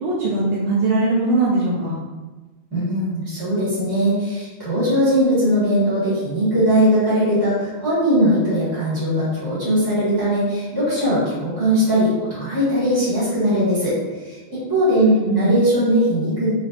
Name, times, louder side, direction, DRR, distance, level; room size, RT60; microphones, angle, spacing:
voice 1, 0.0-1.9 15.0-15.5, right 2 dB, 85° right, -7 dB, 0.9 m, -20 dB
voice 2, 2.7-16.5, equal, 25° right, -12 dB, 1.5 m, -20 dB
3.2 x 2.7 x 2.4 m, 1.2 s
omnidirectional pair, 1.0 m